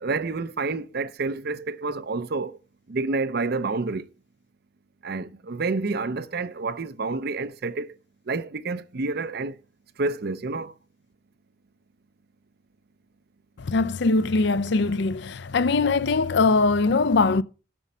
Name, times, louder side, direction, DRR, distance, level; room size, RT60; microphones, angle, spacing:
voice 1, 0.0-2.6 2.9-4.1 5.0-8.0 8.3-9.6 10.0-10.7, right 3 dB, 50° right, 0.6 m, -29 dB
voice 2, 13.6-17.4, left 3 dB, 55° left, 0.5 m, -21 dB
11.5 x 6.2 x 5.4 m
head